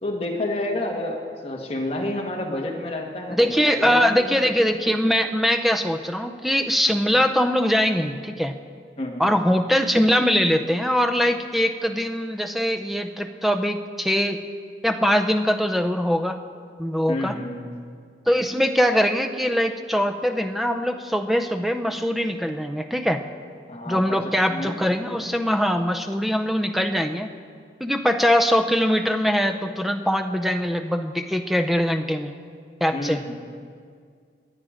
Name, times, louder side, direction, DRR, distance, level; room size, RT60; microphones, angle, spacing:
voice 1, 0.0-4.3 9.0-9.3 17.1-17.6 23.7-24.7 32.9-33.3, left 1 dB, 30° left, -1 dB, 1.6 m, -30 dB
voice 2, 3.3-8.5 9.2-14.4 14.8-16.4 16.8-17.3 18.3-23.2 23.9-27.3 27.8-32.3 32.8-33.2, equal, ahead, 7 dB, 0.5 m, -22 dB
22.0 x 8.9 x 5.1 m, 2.1 s
head